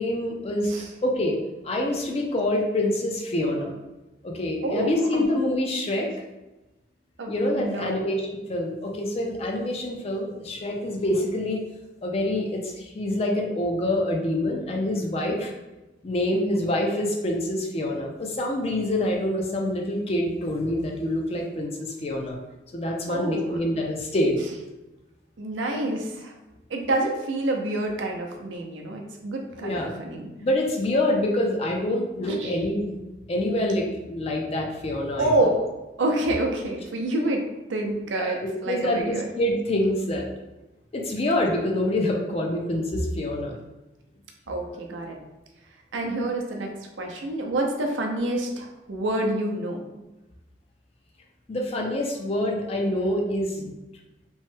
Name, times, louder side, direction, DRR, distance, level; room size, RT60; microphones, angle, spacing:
voice 1, 0.0-1.4 1.6-3.7 4.2-6.1 7.3-11.7 12.0-15.5 16.0-22.4 22.7-24.4 29.6-29.9 30.4-33.0 33.3-35.5 38.2-40.3 40.9-43.6 51.5-53.7, left 1 dB, 35° left, 1 dB, 0.4 m, -26 dB
voice 2, 4.6-5.3 7.2-8.1 23.1-23.6 24.4-24.5 25.4-26.3 26.7-30.3 32.3-32.6 35.2-35.7 36.0-39.3 44.5-45.2 45.9-46.7 47.0-49.8, right 1 dB, 85° right, 2 dB, 0.5 m, -28 dB
3.0 x 2.1 x 3.1 m, 1.0 s
head